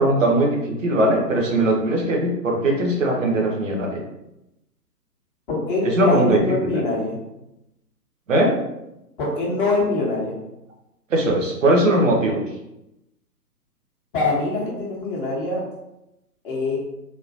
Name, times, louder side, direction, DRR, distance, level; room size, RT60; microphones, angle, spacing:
voice 1, 0.0-4.0 5.8-6.8 8.3-8.5 11.1-12.4, right 1 dB, 50° right, 0 dB, 0.9 m, -20 dB
voice 2, 5.5-7.2 9.2-10.4 14.1-15.6 16.4-16.8, left 2 dB, 30° left, -5 dB, 1.1 m, -23 dB
3.9 x 2.7 x 2.6 m, 0.89 s
figure-of-eight pair, 125°, 49 cm